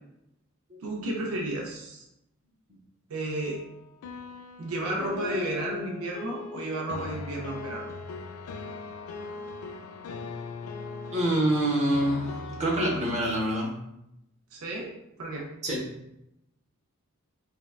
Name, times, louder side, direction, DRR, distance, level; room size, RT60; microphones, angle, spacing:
voice 1, 0.8-2.0 3.1-3.6 4.6-7.9 14.5-14.9 15.2-15.5, right 1 dB, 75° right, -2 dB, 0.5 m, -32 dB
sound 1, 3.3-13.4, left 4 dB, 85° left, 0.3 m, -39 dB
voice 2, 11.1-13.8 15.6-15.8, right 1 dB, 30° right, -4 dB, 0.8 m, -26 dB
3.5 x 2.1 x 2.3 m, 0.84 s
head